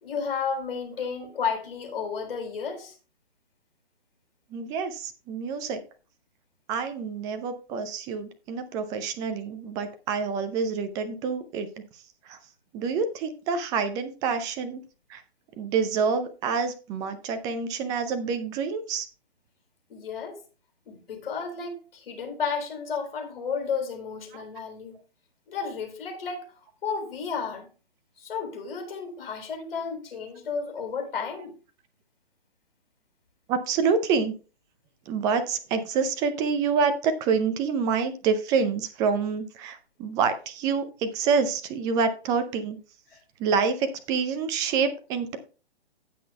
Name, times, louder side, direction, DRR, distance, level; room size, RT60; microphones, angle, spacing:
voice 1, 0.0-3.0 19.9-20.4 20.9-25.0 25.5-26.5 26.8-27.7 28.2-31.5 43.1-43.2, left 5 dB, 60° left, 3 dB, 3.8 m, -32 dB
voice 2, 4.5-5.8 6.7-11.7 12.3-12.4 12.7-14.8 15.1-15.2 15.6-19.1 33.5-34.3 35.1-42.8 43.4-45.4, right 5 dB, 10° right, 10 dB, 0.5 m, -27 dB
17.5 x 6.0 x 2.3 m, 0.35 s
figure-of-eight pair, 130°, 32 cm